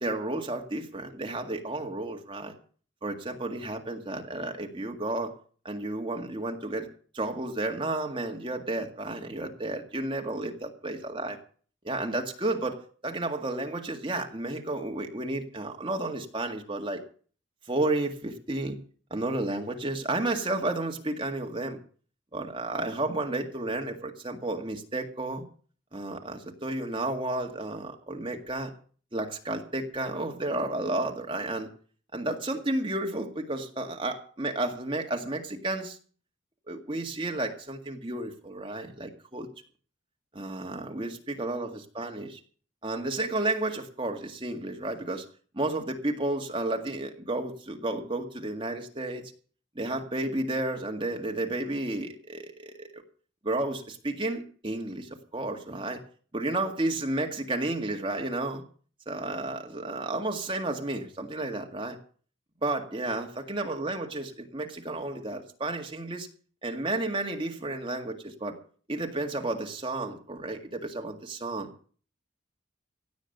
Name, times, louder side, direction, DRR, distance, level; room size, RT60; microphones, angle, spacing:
voice 1, 0.0-2.5 3.0-5.3 5.6-6.9 7.1-11.4 11.8-17.0 17.7-18.8 19.1-21.8 22.3-25.4 25.9-28.7 29.1-31.7 32.1-36.0 36.7-39.5 40.3-42.4 42.8-45.2 45.5-49.2 49.8-53.0 53.4-56.0 56.3-58.6 59.1-62.0 62.6-66.3 66.6-68.6 68.9-71.7, right 2 dB, 25° right, 3 dB, 1.9 m, -32 dB
16.5 x 8.9 x 6.6 m, 0.43 s
head